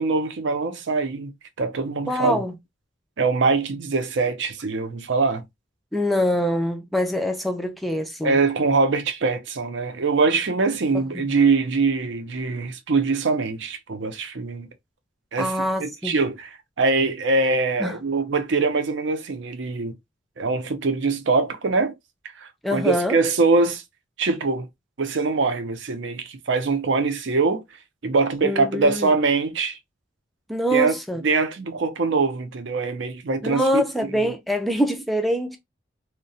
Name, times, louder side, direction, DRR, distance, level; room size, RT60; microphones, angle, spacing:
voice 1, 0.0-1.3 1.6-2.4 3.2-5.4 8.2-14.7 15.3-15.5 15.8-16.5 16.8-19.9 20.4-21.9 22.4-23.8 24.2-24.7 25.0-27.6 28.0-29.8 30.7-30.9 31.2-33.8, right 4 dB, 60° right, 0.5 m, -23 dB
voice 2, 2.1-2.5 5.9-8.4 10.9-11.2 15.4-16.2 17.8-18.0 22.6-23.2 28.4-29.1 30.5-31.2 33.4-35.6, equal, ahead, 0.3 m, -24 dB
2.7 x 2.2 x 2.6 m
head